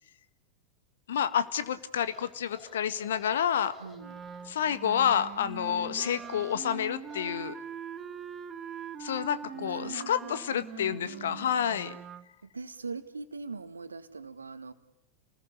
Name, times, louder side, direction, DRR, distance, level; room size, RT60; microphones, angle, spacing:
voice 1, 1.1-3.7 4.5-7.5 9.0-12.0, left 9 dB, 60° left, 12 dB, 1.7 m, -29 dB
sound 1, 1.9-7.4, left 2 dB, 15° left, 5.6 m, -55 dB
voice 2, 3.8-4.2 5.6-5.8 9.5-10.4 10.7-11.7 12.4-14.7, right 4 dB, 75° right, 10 dB, 2.0 m, -42 dB
Wind instrument woodwind instrument, 3.9-12.3, right 7 dB, 20° right, 1.5 m, -43 dB
29.5 x 20.5 x 9.8 m, 0.81 s
figure-of-eight pair, 90°, 0 cm